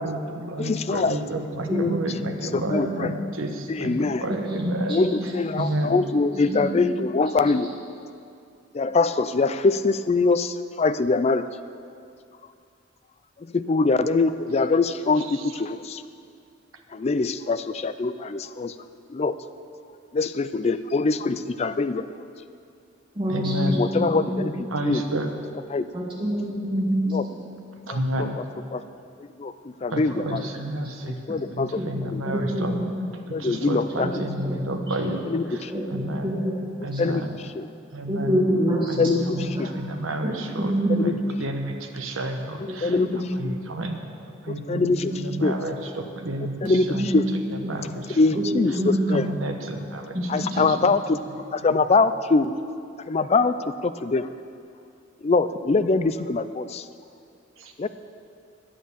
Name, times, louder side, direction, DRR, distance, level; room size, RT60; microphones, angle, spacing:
voice 1, 0.0-5.0 5.5-5.9 15.2-15.4 23.3-23.8 24.7-25.3 27.9-28.4 29.9-31.2 31.5-35.2 35.5-36.4 36.8-37.4 37.9-38.5 38.9-40.7 41.0-43.0 43.3-44.0 44.4-47.1 47.7-48.4 49.1-51.0 51.6-51.7 57.6-57.9, right 1 dB, 85° right, 4 dB, 1.1 m, -31 dB
voice 2, 0.6-1.2 1.7-1.9 2.5-3.1 3.7-4.2 4.9-7.7 8.7-11.4 13.5-16.0 16.9-18.7 19.1-19.4 20.1-22.0 23.7-25.0 25.7-25.9 27.1-27.2 27.9-28.4 28.7-28.8 29.4-30.5 31.3-32.2 33.3-34.1 35.3-35.7 37.0-37.2 37.6-37.7 39.0-39.7 40.9-41.1 42.8-43.1 43.4-43.5 44.5-45.1 45.4-45.6 46.6-47.2 48.1-48.7 49.1-49.3 50.3-51.2 51.5-52.5 53.1-53.5 53.8-54.3 55.2-56.8 57.8-57.9, left 3 dB, 30° left, 12 dB, 0.3 m, -23 dB
voice 3, 4.3-5.0 6.1-6.9 23.2-24.1 24.4-24.5 25.9-27.0 30.1-30.2 31.8-31.9 32.2-32.9 33.9-35.1 35.7-37.0 38.1-39.6 40.6-40.9 42.9-43.3 43.7-43.8 45.0-45.3 46.6-47.2 48.4-49.0 50.1-50.3, equal, 25° right, -5 dB, 2.4 m, -27 dB
10.0 x 8.8 x 7.0 m, 2.4 s
head